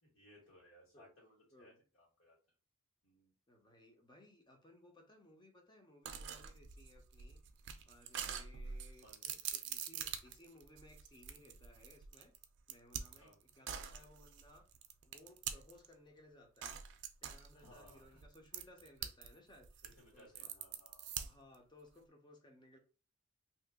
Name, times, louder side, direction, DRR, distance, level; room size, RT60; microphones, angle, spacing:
voice 1, 0.0-2.4 3.0-3.3 9.0-9.4 13.2-13.4 17.5-18.2 19.8-21.2, left 1 dB, 65° left, 1.6 m, -63 dB
voice 2, 3.5-7.4 7.9-12.3 12.7-14.7 15.0-16.8 17.2-19.8 20.1-20.5 21.1-22.8, left 1 dB, 20° left, 0.7 m, -62 dB
sound 1, 6.1-15.9 16.6-19.3 19.6-21.6, right 8 dB, 55° right, 0.4 m, -45 dB
2.7 x 2.4 x 3.6 m
head